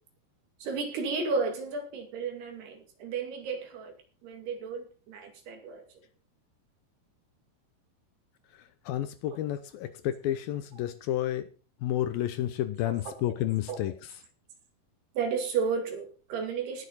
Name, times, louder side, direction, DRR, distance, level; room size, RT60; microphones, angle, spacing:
voice 1, 0.6-3.9 4.2-5.8 12.9-13.1 13.7-13.8 15.2-16.9, right 5 dB, 75° right, 4 dB, 4.3 m, -33 dB
voice 2, 8.9-11.5 11.8-13.9, left 13 dB, 75° left, 11 dB, 2.3 m, -30 dB
19.0 x 7.1 x 4.1 m, 0.37 s
omnidirectional pair, 4.7 m